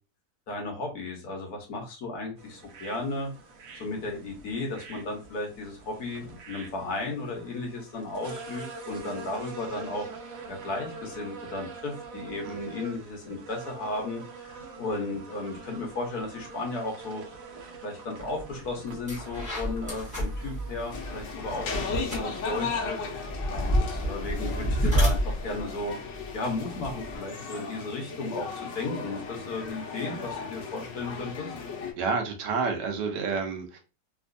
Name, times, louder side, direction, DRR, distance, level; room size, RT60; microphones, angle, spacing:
voice 1, 0.5-3.3 3.8-10.1 10.5-17.2 17.8-23.0 23.5-26.0 26.3-28.5 28.7-31.5, left 2 dB, 60° left, 1 dB, 1.5 m, -34 dB
sound 1, 2.4-21.2, right 4 dB, 60° right, 1.1 m, -44 dB
sound 2, 18.3-18.5 18.9-27.1, equal, 5° right, 1.1 m, -30 dB
sound 3, 20.9-31.9, left 5 dB, 80° left, 1.5 m, -36 dB
voice 2, 32.0-33.8, right 4 dB, 75° right, 4 dB, 1.3 m, -29 dB
3.4 x 3.0 x 2.5 m, 0.30 s
omnidirectional pair, 1.9 m